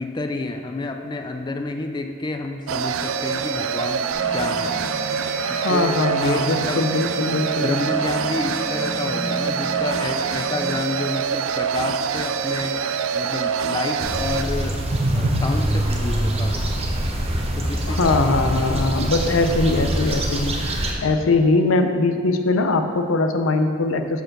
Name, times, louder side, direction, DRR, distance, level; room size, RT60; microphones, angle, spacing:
voice 1, 0.0-4.8 5.5-6.9 7.6-12.9 13.1-14.8 15.1-16.6 17.6-18.2 18.6-18.7 19.5-19.9 21.1-21.2, left 2 dB, 20° left, 5 dB, 0.4 m, -29 dB
sound 1, 2.7-14.4, right 6 dB, 85° right, 0.4 m, -25 dB
sound 2, 4.1-10.8, equal, 5° left, 1.4 m, -34 dB
voice 2, 5.6-7.7 17.9-20.5 21.0-24.2, left 3 dB, 85° left, 7 dB, 0.6 m, -21 dB
sound 3, 14.0-20.9, right 1 dB, 30° right, 0.8 m, -24 dB
6.6 x 5.1 x 6.0 m, 2.1 s
head